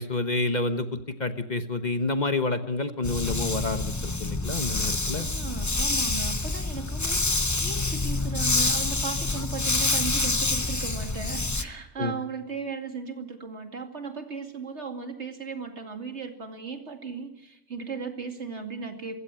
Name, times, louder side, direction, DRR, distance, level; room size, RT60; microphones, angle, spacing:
voice 1, 0.0-5.3 12.0-12.1, left 2 dB, 35° left, 9 dB, 1.2 m, -29 dB
Dog, 3.0-11.6, left 2 dB, 15° left, 0.7 m, -27 dB
voice 2, 5.1-19.2, right 5 dB, 65° right, 5 dB, 2.7 m, -36 dB
24.5 x 15.5 x 8.9 m, 0.90 s
omnidirectional pair, 1.3 m